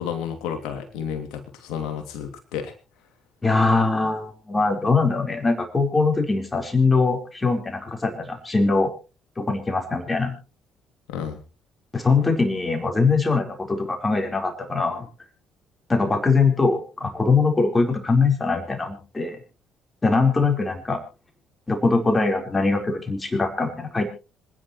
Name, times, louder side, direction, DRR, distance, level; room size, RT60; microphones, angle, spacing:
voice 1, 0.0-2.7 11.1-11.4, left 8 dB, 70° left, 6 dB, 2.7 m, -31 dB
voice 2, 3.4-8.9 9.4-10.3 11.9-15.1 15.9-19.4 20.0-21.0 21.7-24.1, left 3 dB, 25° left, 4 dB, 4.4 m, -22 dB
26.0 x 10.5 x 3.2 m, 0.32 s
hypercardioid pair, 50°, 0 cm